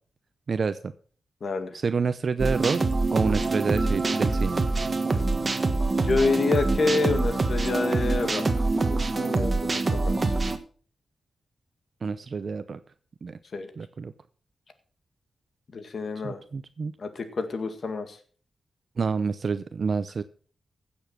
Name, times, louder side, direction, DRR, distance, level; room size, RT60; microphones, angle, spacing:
voice 1, 0.5-0.8 1.7-2.8 3.1-4.6 12.0-12.8 13.2-13.4 13.8-14.1 16.2-16.9 19.0-20.2, right 5 dB, 50° right, 12 dB, 0.6 m, -28 dB
voice 2, 1.4-1.8 6.0-8.5 8.7-9.5 9.9-10.4 13.5-13.7 15.7-16.4 17.0-18.2, left 3 dB, 55° left, 8 dB, 2.0 m, -28 dB
sound 1, 2.4-10.6, right 3 dB, 35° right, 1.5 m, -25 dB
16.0 x 7.1 x 5.9 m, 0.42 s
wide cardioid pair, 100°, 0 cm